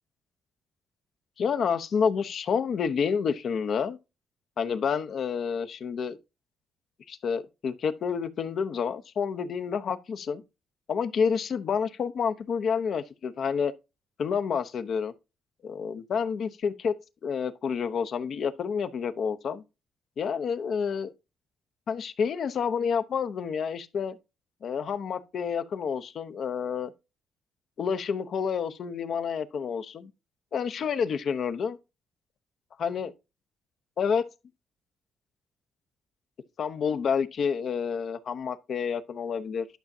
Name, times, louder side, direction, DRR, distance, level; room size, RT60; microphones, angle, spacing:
voice 1, 1.4-4.0 4.6-6.2 7.1-10.4 10.9-13.7 14.2-15.1 15.6-16.9 17.2-19.6 20.2-21.1 21.9-24.2 24.6-26.9 27.8-30.1 30.5-31.8 32.8-33.1 34.0-34.2 36.6-39.7, left 6 dB, 60° left, 0.8 m, -29 dB
11.5 x 5.9 x 2.7 m
cardioid pair, 90°, 0 cm